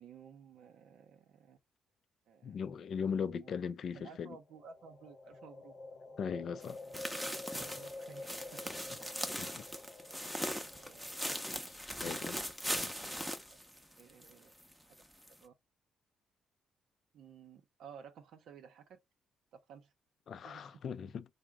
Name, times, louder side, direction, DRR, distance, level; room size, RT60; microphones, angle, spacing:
voice 1, 0.0-1.6 2.3-2.6 3.1-3.6 3.9-5.7 7.5-8.7 10.7-11.0 13.0-13.1 13.5-13.6 14.0-14.5 14.8-15.0 15.3-15.5 17.1-19.0 19.5-19.9 20.3-20.8, right 7 dB, 75° right, 0.6 m, -55 dB
voice 2, 2.4-4.4 6.2-6.8 9.4-9.5 11.6-12.4 12.7-13.1 20.3-21.2, left 6 dB, 60° left, 0.4 m, -39 dB
sound 1, 4.4-12.4, left 2 dB, 40° left, 0.8 m, -50 dB
sound 2, 6.6-14.3 14.6-14.7 15.2-15.3, equal, ahead, 0.6 m, -40 dB
3.5 x 2.0 x 3.4 m
cardioid pair, 90°, 0 cm